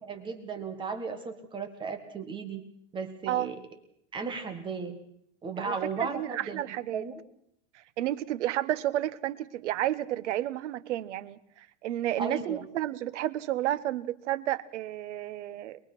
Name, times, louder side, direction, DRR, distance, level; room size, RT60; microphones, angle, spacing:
voice 1, 0.0-2.6 2.9-3.5 4.1-5.0 5.4-6.6 6.9-7.2 12.2-12.6, right 4 dB, 15° right, 7 dB, 1.7 m, -35 dB
voice 2, 5.6-7.0 8.0-15.8, right 13 dB, 75° right, 15 dB, 1.4 m, -31 dB
23.5 x 22.0 x 6.1 m, 0.70 s
supercardioid pair, 175°, 36 cm